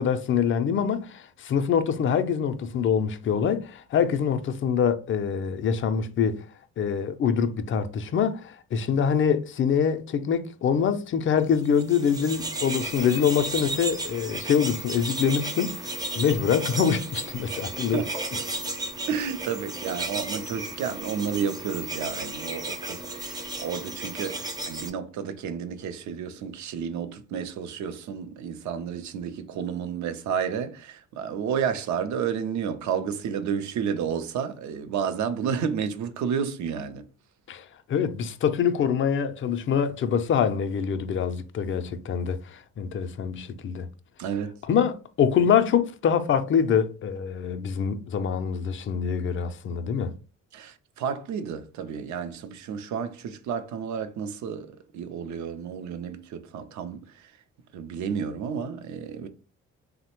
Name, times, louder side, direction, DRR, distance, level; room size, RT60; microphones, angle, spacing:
voice 1, 0.0-6.4 6.8-18.0 37.5-43.9 44.7-50.2, left 7 dB, 45° left, 0.4 m, -25 dB
sound 1, 11.6-24.9, right 2 dB, 15° right, 0.5 m, -34 dB
voice 2, 19.1-37.0 44.2-44.5 50.5-57.0 57.7-59.3, right 7 dB, 70° right, 0.5 m, -31 dB
3.2 x 2.1 x 2.9 m
cardioid pair, 90°, 30 cm